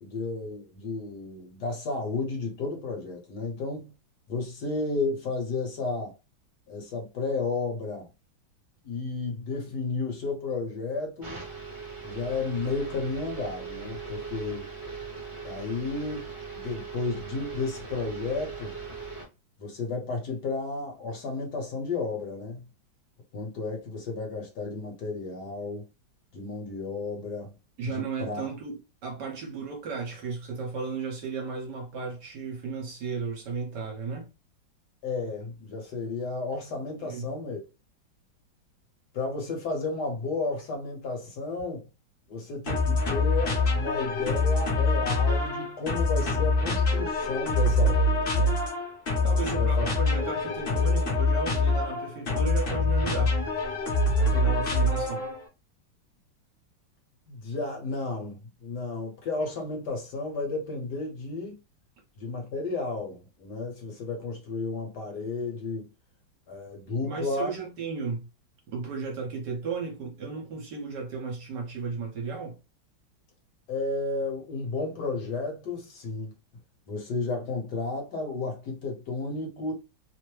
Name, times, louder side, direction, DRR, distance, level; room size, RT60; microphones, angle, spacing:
voice 1, 0.0-3.9 4.3-6.1 6.7-8.1 8.8-11.4 12.0-14.7 15.4-18.7 19.6-22.6 23.3-25.9 26.3-27.5 27.8-28.5 35.0-37.6 39.1-41.9 42.3-48.6 49.3-49.9 57.3-61.6 62.2-65.9 66.5-67.5 73.7-76.3 76.9-79.7, left 3 dB, 60° left, 1.5 m, -32 dB
sound 1, 11.2-19.2, right 5 dB, 25° right, 0.8 m, -39 dB
voice 2, 27.8-34.3 36.9-37.3 49.2-53.4 54.2-55.3 67.0-68.3 68.7-72.6, right 5 dB, 65° right, 1.3 m, -35 dB
sound 2, 42.7-55.4, left 2 dB, 40° left, 0.9 m, -25 dB
3.3 x 2.1 x 3.0 m
omnidirectional pair, 2.1 m